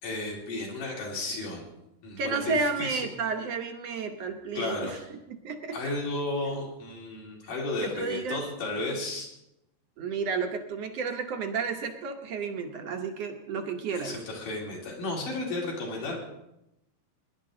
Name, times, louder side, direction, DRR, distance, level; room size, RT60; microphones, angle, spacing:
voice 1, 0.0-1.7 2.0-3.0 4.5-5.0 5.7-9.3 13.9-16.2, left 2 dB, 65° left, -2 dB, 4.6 m, -33 dB
voice 2, 2.2-5.0 5.3-5.7 7.8-8.4 10.0-14.1, right 5 dB, 65° right, 4 dB, 1.7 m, -32 dB
22.0 x 11.0 x 3.8 m, 0.87 s
omnidirectional pair, 4.0 m